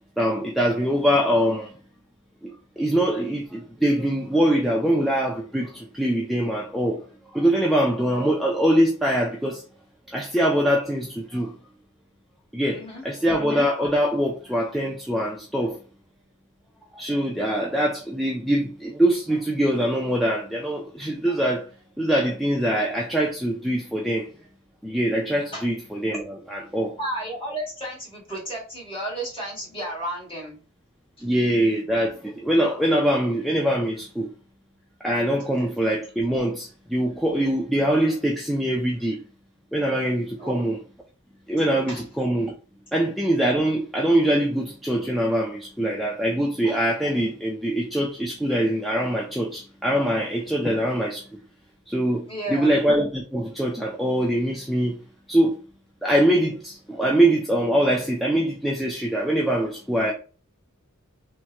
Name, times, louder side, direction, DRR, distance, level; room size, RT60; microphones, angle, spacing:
voice 1, 0.2-1.7 2.4-7.0 7.3-9.6 10.1-11.5 12.5-15.8 16.9-21.6 22.0-24.3 24.8-27.0 31.2-34.3 35.0-39.2 39.7-40.8 41.5-42.5 42.9-51.2 51.9-55.0 55.3-55.6 56.0-60.1, right 1 dB, ahead, 0.3 m, -23 dB
voice 2, 12.6-13.0 25.5-25.6 27.0-30.6 31.2-31.3 40.4-40.7 41.9-42.0 52.3-52.7, right 1 dB, 25° left, 1.6 m, -33 dB
3.4 x 2.1 x 2.9 m
head